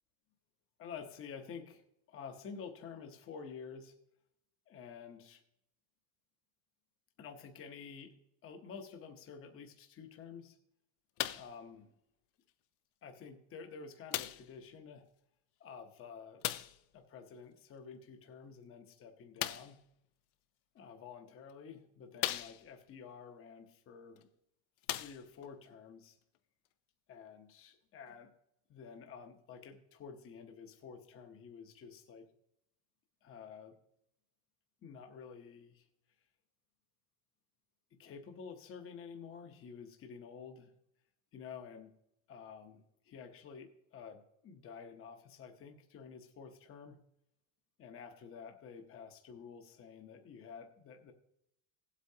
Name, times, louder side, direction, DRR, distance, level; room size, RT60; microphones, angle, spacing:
voice 1, 0.8-1.8 2.1-3.9 4.7-5.4 7.2-8.2 8.4-10.6 11.3-11.9 13.0-15.1 15.6-16.4 16.9-19.8 20.7-24.3 24.9-26.2 27.1-28.3 28.7-32.3 33.2-33.7 34.8-35.9 37.9-40.7 41.3-41.9 42.3-47.0 47.8-51.1, left 6 dB, 30° left, 5 dB, 0.9 m, -50 dB
sound 1, 11.2-11.6 12.5-12.6 14.1-14.5 16.4-16.8 19.4-19.8 20.8-20.9 21.5-21.6 22.2-22.9 24.2-24.3 24.8-25.5 26.3-26.4, left 15 dB, 75° left, 0.7 m, -38 dB
16.5 x 8.3 x 2.8 m, 0.78 s
cardioid pair, 165°, 47 cm